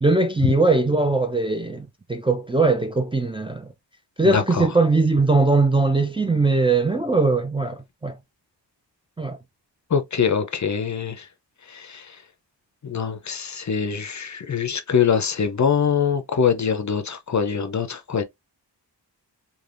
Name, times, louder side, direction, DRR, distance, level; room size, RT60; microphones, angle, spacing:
voice 1, 0.0-3.7 4.2-8.1 9.2-9.4, right 3 dB, 10° right, 0.4 m, -20 dB
voice 2, 4.2-4.7 9.9-11.3 11.7-12.2 12.8-18.2, left 7 dB, 40° left, 0.6 m, -23 dB
3.3 x 2.3 x 2.5 m
cardioid pair, 50°, 44 cm